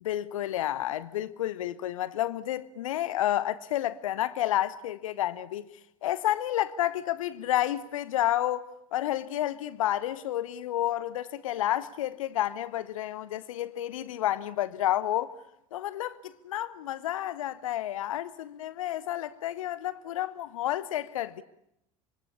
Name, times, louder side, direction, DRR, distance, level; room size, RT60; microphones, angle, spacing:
voice 1, 0.0-5.7 6.0-15.3 15.7-21.4, left 13 dB, 65° left, 1.0 m, -30 dB
26.0 x 23.5 x 8.5 m
figure-of-eight pair, 70°, 18 cm